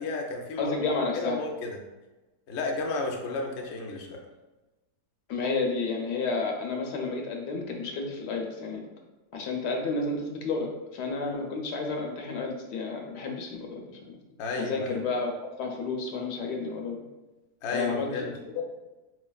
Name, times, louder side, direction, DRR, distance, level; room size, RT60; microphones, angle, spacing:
voice 1, 0.0-0.7 1.1-1.8 2.5-4.2 14.4-15.0 17.6-18.3, left 3 dB, 60° left, 0 dB, 0.7 m, -32 dB
voice 2, 0.6-1.4 5.3-8.8 9.3-14.2 14.7-17.0 17.7-18.1 18.5-18.6, left 3 dB, 80° left, 1 dB, 1.3 m, -31 dB
4.5 x 3.1 x 2.3 m, 1.1 s
omnidirectional pair, 1.8 m